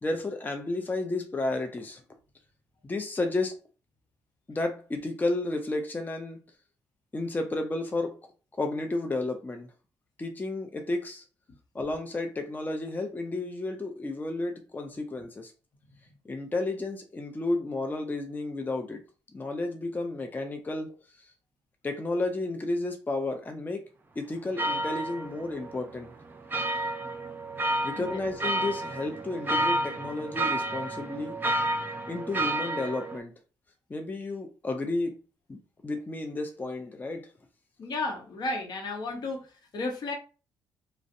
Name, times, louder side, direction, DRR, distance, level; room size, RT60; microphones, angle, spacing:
voice 1, 0.0-2.0 2.8-3.6 4.5-6.4 7.1-8.2 8.6-9.7 10.2-11.2 11.7-15.5 16.3-19.0 19.3-20.9 21.2-21.3 21.8-23.9 24.2-26.1 27.8-31.4 32.1-33.3 33.9-35.1 35.5-37.3, left 2 dB, 20° left, 0.5 m, -32 dB
sound 1, 24.6-33.2, right 1 dB, 25° right, 0.5 m, -31 dB
voice 2, 37.8-40.1, left 2 dB, 60° left, 0.8 m, -33 dB
2.5 x 2.0 x 2.5 m
supercardioid pair, 65°, 8 cm